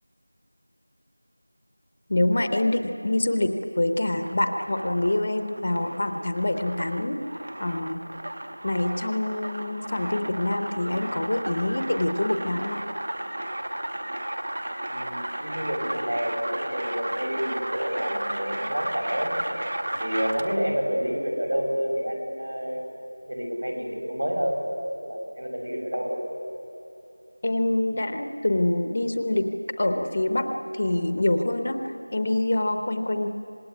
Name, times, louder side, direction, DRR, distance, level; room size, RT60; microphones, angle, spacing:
voice 1, 2.1-7.2 7.6-8.0 8.6-12.8 27.4-29.5 29.8-30.5 30.7-33.3, left 1 dB, 20° left, 7 dB, 0.8 m, -25 dB
sound 1, 4.1-20.7, right 1 dB, 35° right, 1.1 m, -34 dB
voice 2, 14.9-19.3 20.0-22.8 23.3-24.6 25.0-26.2, equal, 75° right, 1 dB, 7.1 m, -29 dB
26.5 x 19.0 x 9.8 m, 3.0 s
figure-of-eight pair, 180°, 0 cm